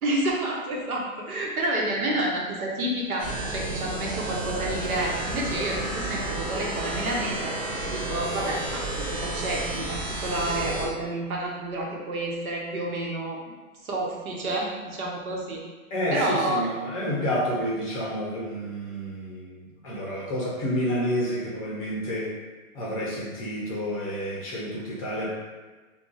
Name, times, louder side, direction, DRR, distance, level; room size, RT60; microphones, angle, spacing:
voice 1, 0.0-13.4 13.8-15.6 16.1-16.6, right 1 dB, 85° right, -2 dB, 1.0 m, -29 dB
sound 1, 3.2-10.9, right 2 dB, 25° right, 0.6 m, -31 dB
voice 2, 15.9-22.3 22.7-25.3, equal, 25° left, -5 dB, 0.6 m, -29 dB
2.4 x 2.3 x 3.8 m, 1.3 s
hypercardioid pair, 140°, 42 cm